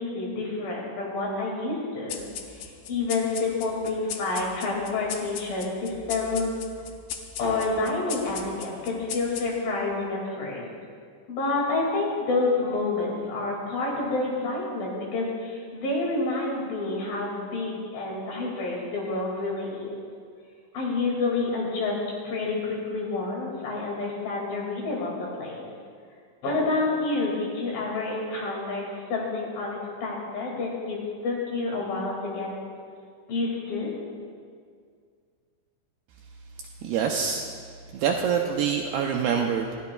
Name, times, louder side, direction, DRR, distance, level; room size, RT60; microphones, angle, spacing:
voice 1, 0.0-2.2 2.5-6.5 7.4-10.6 11.3-20.0 20.7-25.7 26.4-31.0 31.2-32.5 33.3-33.9, left 3 dB, 55° left, -2 dB, 3.7 m, -28 dB
sound 1, 2.1-9.8, left 8 dB, 80° left, 2.2 m, -39 dB
voice 2, 36.8-37.4 37.9-39.7, right 7 dB, 85° right, 1 dB, 2.3 m, -25 dB
20.0 x 14.0 x 2.3 m, 2.1 s
omnidirectional pair, 5.2 m